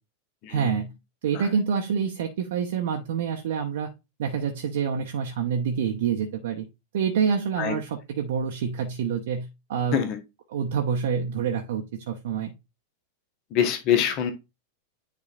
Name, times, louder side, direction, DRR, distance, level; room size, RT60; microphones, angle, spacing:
voice 1, 0.5-0.9 1.2-3.9 4.2-6.7 6.9-10.0 10.5-12.5, right 7 dB, 55° right, 3 dB, 0.8 m, -27 dB
voice 2, 13.5-14.3, left 9 dB, 40° left, 6 dB, 1.0 m, -24 dB
9.9 x 3.9 x 2.4 m, 0.25 s
figure-of-eight pair, 90°, 0 cm